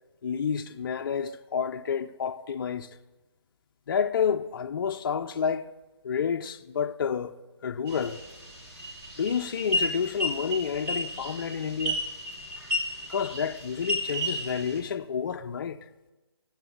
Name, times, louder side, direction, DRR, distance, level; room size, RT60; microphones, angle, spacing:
voice 1, 0.2-2.9 3.9-5.7 6.0-7.4 7.6-8.2 9.2-12.0 13.1-15.8, left 7 dB, 50° left, 0.4 m, -29 dB
sound 1, 7.9-14.8, left 1 dB, 10° right, 1.0 m, -33 dB
7.6 x 7.1 x 7.1 m
hypercardioid pair, 155°, 14 cm